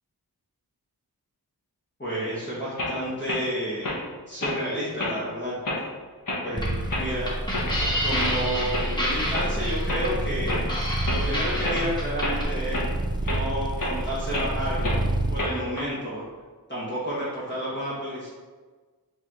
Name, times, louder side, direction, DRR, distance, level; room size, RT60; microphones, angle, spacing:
voice 1, 2.0-3.9 4.3-5.5 6.4-7.3 8.0-10.8 11.1-12.8 13.3-15.0 15.3-16.2 16.7-18.3, equal, 30° left, -10 dB, 1.4 m, -30 dB
sound 1, 2.8-2.9 3.3-3.4 3.8-4.0 4.4-4.6 5.0-5.2 5.6-5.8 6.3-6.4 6.9-7.1 7.5-7.9 8.2-8.3 8.7-8.9 9.3-9.5 9.9-10.0 10.5-10.6 11.1-11.2 11.6-11.8 12.2-12.4 12.7-12.9 13.2-13.4 13.8-13.9 14.3-14.5 14.8-15.0 15.4-15.8, left 2 dB, 55° left, 1.2 m, -29 dB
sound 2, 6.5-12.4, equal, 10° left, 1.1 m, -30 dB
sound 3, 6.6-15.5, right 1 dB, 10° right, 0.4 m, -29 dB
4.8 x 2.9 x 3.7 m, 1.4 s
wide cardioid pair, 85°, 39 cm